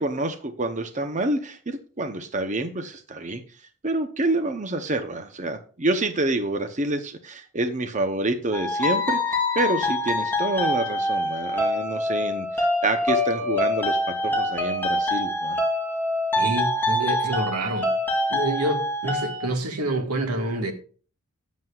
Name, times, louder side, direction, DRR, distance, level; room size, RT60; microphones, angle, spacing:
voice 1, 0.0-3.4 3.8-14.0 14.2-15.6, right 2 dB, 35° right, 0.8 m, -27 dB
sound 1, 8.5-19.4, left 1 dB, 10° left, 2.9 m, -25 dB
voice 2, 16.3-17.9 18.3-20.7, right 2 dB, 90° right, 1.8 m, -27 dB
13.5 x 9.4 x 2.4 m
head